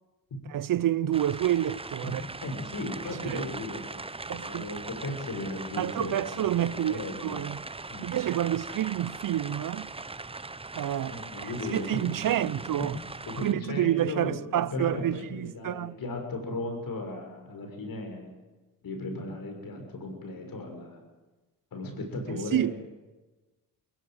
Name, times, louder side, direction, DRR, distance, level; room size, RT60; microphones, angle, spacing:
voice 1, 0.5-2.2 3.3-3.4 4.3-4.7 5.8-7.6 8.0-9.9 10.7-11.1 11.7-13.0 13.4-16.0 22.5-22.7, right 12 dB, 55° right, 0.7 m, -28 dB
sound 1, 1.1-13.5, right 3 dB, 15° right, 0.9 m, -40 dB
voice 2, 2.4-7.5 7.9-8.1 11.1-12.6 13.3-18.3 18.8-21.0 21.7-22.9, left 2 dB, 60° left, 6.5 m, -36 dB
20.5 x 17.0 x 9.3 m
supercardioid pair, 65°, 39 cm